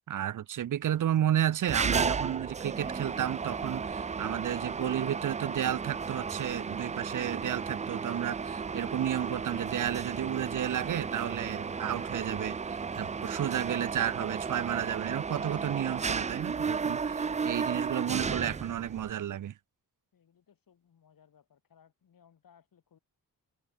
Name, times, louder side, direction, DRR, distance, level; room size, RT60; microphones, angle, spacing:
voice 1, 0.1-19.5, right 11 dB, 55° right, 0.7 m, -32 dB
Mechanisms, 1.7-19.1, right 5 dB, 20° right, 0.4 m, -34 dB
Sliding door, 7.9-15.7, right 5 dB, 40° right, 3.3 m, -53 dB
voice 2, 20.1-23.0, left 8 dB, 65° left, 7.1 m, -63 dB
wide cardioid pair, 120°, 36 cm